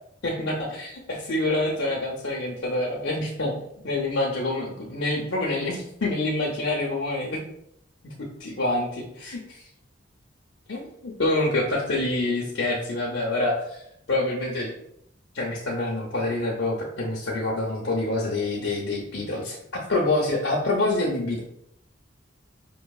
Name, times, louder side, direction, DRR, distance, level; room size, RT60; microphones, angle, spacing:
voice 1, 0.2-3.5 3.8-7.4 8.0-9.6 10.7-13.8 14.1-14.7 15.3-21.4, left 2 dB, 70° left, -4 dB, 0.6 m, -27 dB
5.4 x 2.6 x 2.3 m, 0.75 s
head